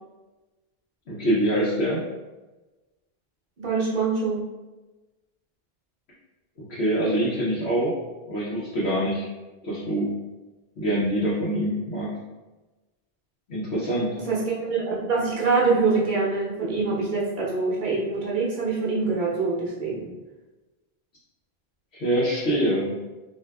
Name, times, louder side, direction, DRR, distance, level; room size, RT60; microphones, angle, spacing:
voice 1, 1.1-2.0 6.7-7.9 8.3-9.3 9.6-10.1 10.8-12.1 13.5-14.1 21.9-22.9, right 1 dB, 75° left, -9 dB, 1.0 m, -24 dB
voice 2, 3.6-4.4 14.2-20.1, right 4 dB, 50° right, -5 dB, 0.9 m, -24 dB
3.4 x 2.7 x 2.2 m, 1.1 s
omnidirectional pair, 1.1 m